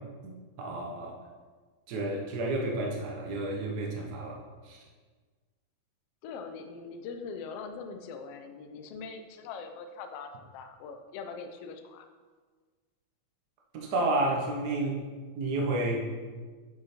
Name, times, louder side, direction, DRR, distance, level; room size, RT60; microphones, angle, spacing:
voice 1, 0.2-1.2 1.9-4.4 4.6-4.8 13.7-15.0 15.3-16.1, right 2 dB, 80° right, -1 dB, 0.8 m, -31 dB
voice 2, 6.2-12.1, left 5 dB, 80° left, 7 dB, 1.4 m, -42 dB
8.4 x 6.4 x 4.3 m, 1.5 s
omnidirectional pair, 3.5 m